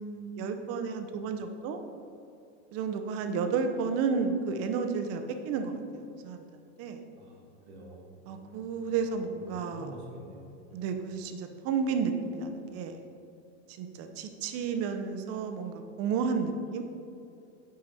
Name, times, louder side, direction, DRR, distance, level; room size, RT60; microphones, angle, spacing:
voice 1, 0.0-1.8 2.7-6.5 6.8-7.0 8.3-9.9 10.7-13.0 13.7-16.8, right 5 dB, 45° right, 6 dB, 0.7 m, -32 dB
voice 2, 7.2-8.6 9.0-10.8, right 1 dB, 70° right, -2 dB, 1.5 m, -48 dB
6.4 x 4.5 x 4.1 m, 2.6 s
supercardioid pair, 120°, 34 cm